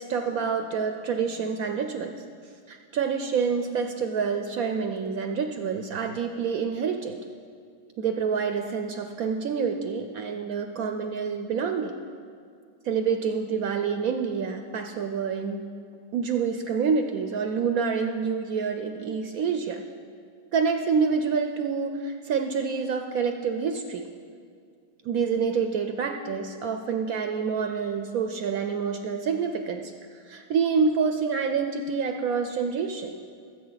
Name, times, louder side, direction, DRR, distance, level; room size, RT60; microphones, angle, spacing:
voice 1, 0.0-2.2 2.7-7.2 8.0-11.9 12.8-15.6 16.1-19.8 20.5-24.1 25.0-29.9 30.3-33.1, right 5 dB, 65° right, 5 dB, 1.0 m, -27 dB
19.5 x 7.9 x 4.0 m, 2.2 s
omnidirectional pair, 1.8 m